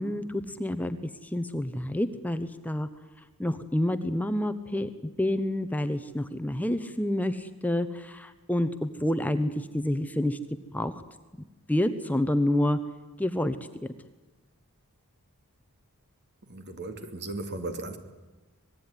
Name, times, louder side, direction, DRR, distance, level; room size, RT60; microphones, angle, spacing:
voice 1, 0.0-2.9 3.4-4.9 5.2-10.4 10.7-11.0 11.7-12.8 13.2-13.9, left 1 dB, 5° left, 10 dB, 0.9 m, -28 dB
voice 2, 16.5-18.0, right 2 dB, 50° right, 8 dB, 2.7 m, -36 dB
26.0 x 20.0 x 9.9 m, 1.2 s
head